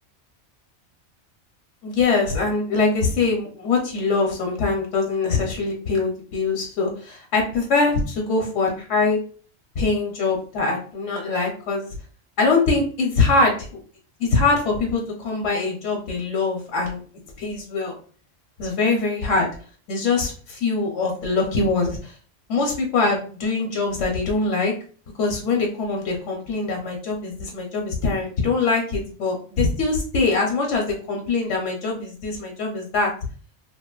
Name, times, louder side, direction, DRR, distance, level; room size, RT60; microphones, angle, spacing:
voice 1, 1.8-9.2 9.8-11.8 12.4-13.7 14.2-17.0 17.4-17.9 18.6-19.5 19.9-22.1 22.5-24.7 25.2-33.1, left 3 dB, 90° left, 1 dB, 1.0 m, -23 dB
2.7 x 2.4 x 2.2 m, 0.42 s
omnidirectional pair, 1.2 m